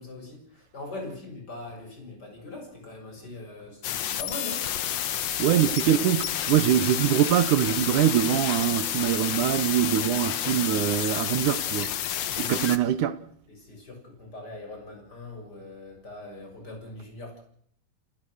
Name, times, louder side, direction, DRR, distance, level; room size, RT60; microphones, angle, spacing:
voice 1, 0.0-4.7 12.3-12.7 13.5-17.4, left 2 dB, 25° left, 7.2 m, -41 dB
sound 1, 3.8-12.8, left 10 dB, 65° left, 1.7 m, -30 dB
voice 2, 5.4-11.9 12.4-13.2, right 11 dB, 70° right, 2.1 m, -23 dB
29.5 x 16.0 x 6.5 m
omnidirectional pair, 4.4 m